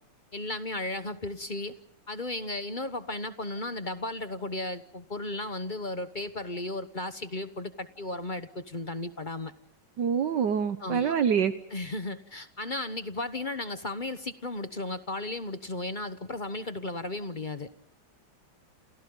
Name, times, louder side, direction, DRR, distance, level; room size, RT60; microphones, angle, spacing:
voice 1, 0.3-1.7 2.1-9.5 10.8-11.1 11.7-17.7, left 2 dB, 30° left, 10 dB, 1.0 m, -35 dB
voice 2, 10.0-11.5, right 7 dB, 65° right, 10 dB, 1.6 m, -25 dB
29.5 x 28.5 x 3.9 m, 0.82 s
omnidirectional pair, 2.1 m